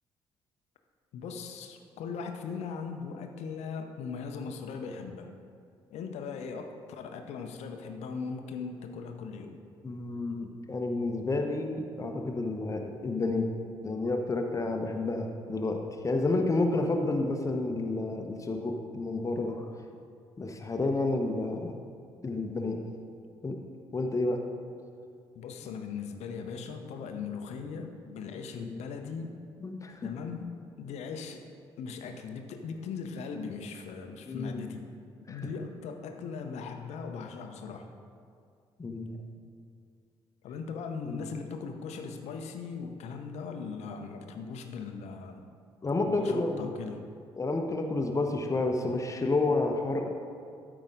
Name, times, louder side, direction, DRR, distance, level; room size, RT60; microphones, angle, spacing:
voice 1, 1.1-5.3 5.9-9.6 25.3-29.4 30.0-31.4 31.8-34.9 35.3-37.9 40.4-45.4 46.0-47.1, left 5 dB, 55° left, 5 dB, 0.8 m, -39 dB
voice 2, 9.8-13.5 13.8-19.7 20.4-21.7 22.2-22.8 23.4-23.6 23.9-24.4 28.6-28.7 29.6-30.1 34.3-34.6 35.3-35.4 38.8-39.2 41.0-41.2 45.8-46.7 47.4-50.1, left 2 dB, 25° left, 4 dB, 1.0 m, -30 dB
13.0 x 5.0 x 3.8 m, 2.3 s
figure-of-eight pair, 45°, 13 cm